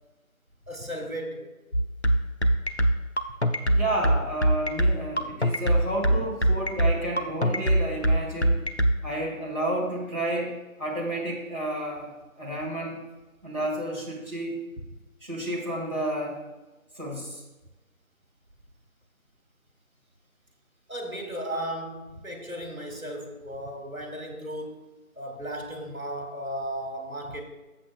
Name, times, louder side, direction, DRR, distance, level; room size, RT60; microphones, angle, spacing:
voice 1, 0.7-1.5 20.9-24.8 25.2-27.4, right 1 dB, 75° right, 3 dB, 2.0 m, -35 dB
sound 1, 1.7-8.9, right 1 dB, 50° left, 0.6 m, -21 dB
voice 2, 3.7-8.6 9.0-12.1 12.4-13.0 13.4-14.6 15.2-16.4 17.0-17.4, right 1 dB, 30° right, -8 dB, 2.1 m, -31 dB
13.5 x 7.9 x 2.2 m, 1.1 s
figure-of-eight pair, 175°, 43 cm